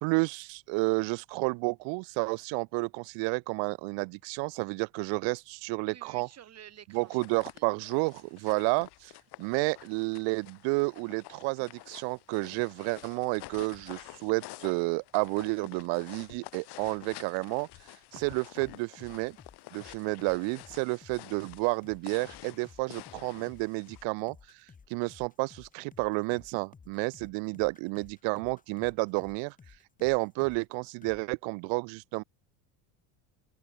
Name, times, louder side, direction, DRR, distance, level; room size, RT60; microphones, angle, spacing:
voice 1, 0.0-6.3 6.9-9.1 9.4-17.7 18.1-19.4 19.7-24.4 24.9-29.5 30.0-32.2, right 31 dB, 70° right, 1.1 m, -31 dB
voice 2, 5.8-7.6 8.2-8.3, right 10 dB, 35° right, 3.2 m, -52 dB
sound 1, 7.0-24.0, left 18 dB, 55° left, 3.1 m, -50 dB
sound 2, 18.2-30.7 31.0-31.2, left 5 dB, 15° left, 1.7 m, -55 dB
open air
cardioid pair, 150°, 47 cm